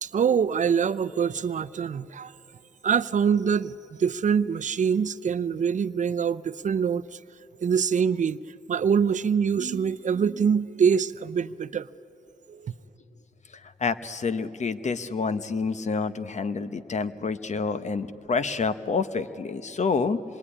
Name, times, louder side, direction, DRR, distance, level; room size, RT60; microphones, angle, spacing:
voice 1, 0.0-2.3 2.8-3.7 4.0-7.2 7.6-8.4 8.7-11.9 12.5-12.7, right 7 dB, 55° right, 14 dB, 0.6 m, -24 dB
voice 2, 13.8-20.2, left 4 dB, 50° left, 12 dB, 1.0 m, -28 dB
26.0 x 21.0 x 10.0 m, 2.7 s
cardioid pair, 90°, 15 cm